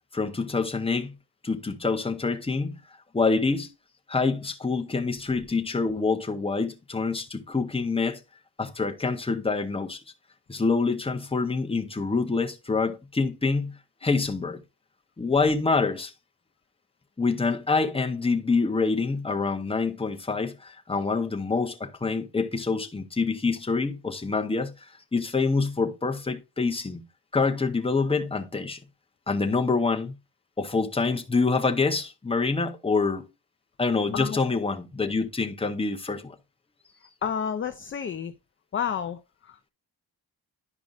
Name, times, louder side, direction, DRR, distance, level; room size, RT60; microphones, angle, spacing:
voice 1, 0.1-1.2 1.4-2.8 3.1-3.7 4.1-8.2 8.6-10.0 10.5-14.6 15.2-16.1 17.2-24.7 25.1-27.0 27.3-28.8 29.3-30.1 30.6-33.3 33.8-36.4, left 4 dB, 15° left, 0.7 m, -26 dB
voice 2, 34.1-34.6 37.2-38.3 38.7-39.7, left 7 dB, 30° left, 0.4 m, -31 dB
11.0 x 5.1 x 2.4 m
wide cardioid pair, 130°, 42 cm